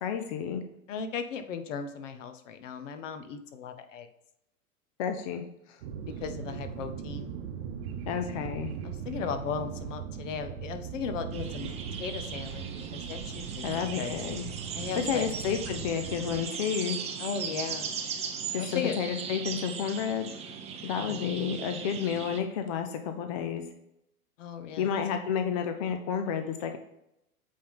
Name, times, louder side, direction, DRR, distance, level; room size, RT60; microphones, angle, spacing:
voice 1, 0.0-0.6 5.0-5.4 5.7-5.8 8.1-8.7 13.6-14.5 15.0-17.0 18.5-20.3 20.8-23.6 24.8-26.8, left 8 dB, 25° left, 7 dB, 0.4 m, -31 dB
voice 2, 0.9-4.1 6.2-7.4 8.3-8.5 8.8-11.7 12.0-14.2 14.7-15.3 17.2-17.9 18.6-19.0 21.0-21.6 24.4-25.0, left 6 dB, 55° left, 9 dB, 1.0 m, -37 dB
sound 1, 5.8-16.4, right 7 dB, 45° right, 1.0 m, -39 dB
sound 2, 11.3-22.4, right 6 dB, 15° right, 0.6 m, -38 dB
8.4 x 3.6 x 3.8 m, 0.83 s
hypercardioid pair, 120°, 44 cm